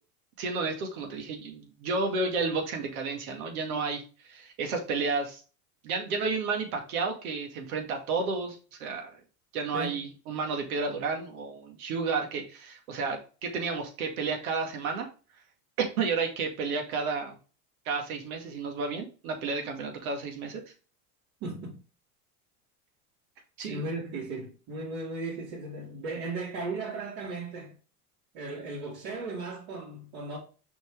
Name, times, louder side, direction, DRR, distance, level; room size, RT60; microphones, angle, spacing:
voice 1, 0.4-4.0 4.3-5.4 5.8-9.2 9.5-15.1 15.8-17.4 17.9-20.6 23.6-23.9, right 4 dB, 80° right, 2.2 m, -31 dB
voice 2, 21.4-21.8 23.7-27.7 28.3-30.4, right 3 dB, 60° right, 3.6 m, -36 dB
6.0 x 4.8 x 3.5 m
supercardioid pair, 115°, 43 cm